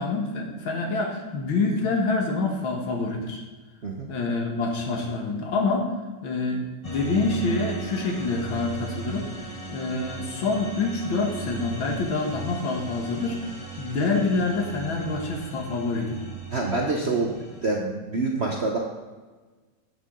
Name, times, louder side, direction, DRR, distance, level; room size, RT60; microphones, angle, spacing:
voice 1, 0.0-3.4 4.1-5.8 6.2-9.3 9.7-13.4 13.8-16.3, left 3 dB, 75° left, 2 dB, 2.2 m, -26 dB
sound 1, 6.8-17.6, right 4 dB, 25° left, 0.9 m, -38 dB
voice 2, 16.5-18.8, right 3 dB, 45° right, 0 dB, 0.9 m, -26 dB
11.5 x 7.3 x 3.8 m, 1.3 s
omnidirectional pair, 2.3 m